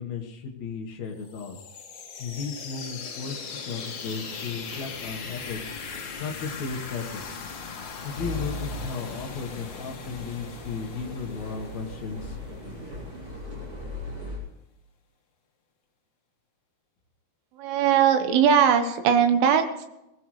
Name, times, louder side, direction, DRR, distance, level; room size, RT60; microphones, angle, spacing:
voice 1, 0.0-1.6 2.2-5.8 6.2-7.4 8.0-12.4, left 5 dB, 85° left, 1 dB, 1.5 m, -35 dB
sound 1, 1.2-12.9, left 5 dB, 50° left, 2.7 m, -39 dB
sound 2, 8.2-14.4, left 1 dB, 20° right, 5.1 m, -38 dB
voice 2, 17.6-19.9, right 8 dB, 75° right, 7 dB, 3.7 m, -20 dB
22.0 x 16.0 x 3.2 m, 0.92 s
omnidirectional pair, 6.0 m